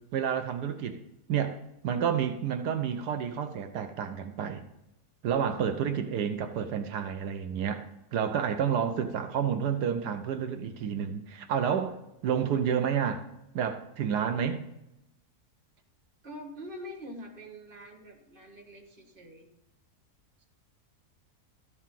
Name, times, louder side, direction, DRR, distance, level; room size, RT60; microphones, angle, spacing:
voice 1, 0.1-1.0 1.3-1.6 1.8-4.6 5.2-7.8 8.1-12.0 12.2-13.2 13.5-14.6, right 8 dB, 85° right, 7 dB, 1.4 m, -29 dB
voice 2, 16.2-19.5 20.4-20.5, equal, 35° right, 1 dB, 1.9 m, -45 dB
13.5 x 4.8 x 7.4 m, 0.85 s
omnidirectional pair, 1.7 m